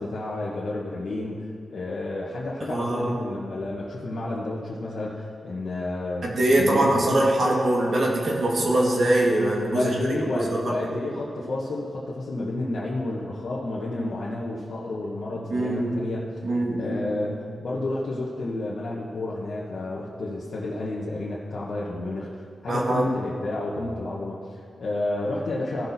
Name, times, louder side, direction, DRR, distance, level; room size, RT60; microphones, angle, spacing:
voice 1, 0.0-1.4 1.7-7.2 9.7-16.2 16.8-22.3 22.6-25.9, left 2 dB, 65° left, -6 dB, 1.2 m, -30 dB
voice 2, 2.6-3.1 6.2-9.9 10.3-10.8 15.5-16.0 16.4-17.2 22.7-23.1, right 1 dB, 60° right, -2 dB, 1.9 m, -23 dB
15.5 x 5.9 x 4.1 m, 2.2 s
cardioid pair, 80°, 0 cm